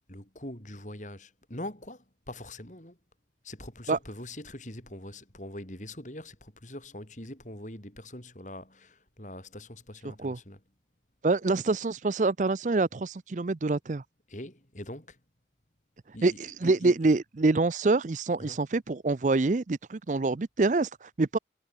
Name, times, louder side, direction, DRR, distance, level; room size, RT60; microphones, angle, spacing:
voice 1, 0.1-3.0 3.4-10.6 14.3-15.2 16.1-17.0 18.4-18.6, left 1 dB, 45° left, 4.9 m, -43 dB
voice 2, 11.2-14.0 16.2-21.4, right 3 dB, 45° right, 0.5 m, -26 dB
head